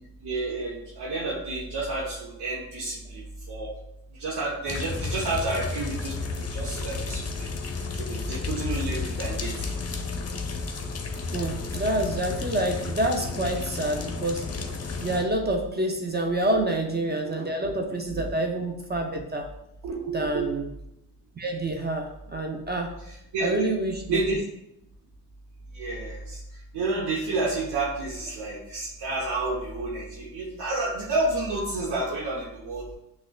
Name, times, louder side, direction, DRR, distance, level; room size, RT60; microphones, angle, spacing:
voice 1, 0.2-3.7 4.2-6.2 6.5-7.5 7.9-9.7 16.5-16.6 18.1-18.3 19.8-20.5 23.0-23.7 24.1-24.4 25.7-26.4 26.7-32.9, right 2 dB, 70° right, -3 dB, 0.9 m, -30 dB
sound 1, 4.7-15.2, left 4 dB, 35° left, 0.7 m, -32 dB
voice 2, 11.3-14.4 15.0-19.5 20.1-20.6 21.4-22.9 23.4-24.2, right 1 dB, 25° right, 2 dB, 0.7 m, -27 dB
5.9 x 2.3 x 2.2 m, 0.82 s
supercardioid pair, 50°, 42 cm